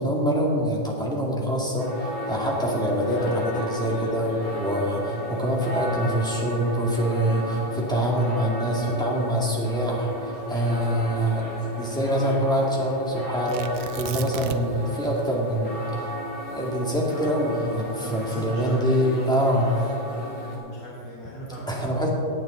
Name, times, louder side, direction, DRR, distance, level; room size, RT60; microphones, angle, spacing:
voice 1, 0.0-1.9 2.3-10.1 10.5-11.4 11.8-15.9 16.5-19.7 21.7-22.1, equal, ahead, -4 dB, 2.0 m, -25 dB
sound 1, 1.8-20.6, equal, 55° left, 2.4 m, -34 dB
Tearing, 13.5-14.9 15.2-15.3 15.8-18.2 18.9-19.3, right 8 dB, 65° right, 0.9 m, -36 dB
voice 2, 17.9-22.1, equal, 85° left, -6 dB, 2.3 m, -39 dB
17.0 x 8.8 x 3.9 m, 2.6 s
omnidirectional pair, 1.9 m